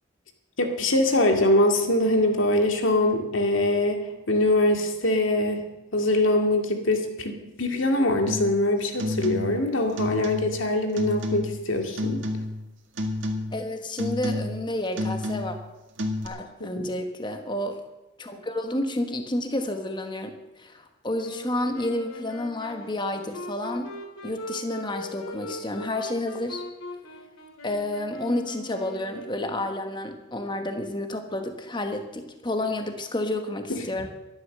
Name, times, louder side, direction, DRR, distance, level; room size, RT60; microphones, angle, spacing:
voice 1, 0.6-5.6 5.9-12.2 16.6-16.9 33.7-33.8, left 1 dB, 70° left, 4 dB, 2.2 m, -23 dB
sound 1, 8.3-8.6 8.9-9.6 10.0-10.7 11.0-11.6 12.0-12.7 13.0-13.6 14.0-14.7 15.0-15.6 16.0-16.3, left 1 dB, 65° right, 2.0 m, -30 dB
voice 2, 13.5-15.6 16.2-17.8 18.2-23.9 24.2-26.6 27.6-34.1, left 1 dB, 20° left, 6 dB, 1.3 m, -30 dB
Wind instrument woodwind instrument, 21.2-30.0, left 1 dB, 90° left, 2.9 m, -40 dB
13.5 x 11.5 x 6.7 m, 1.0 s
head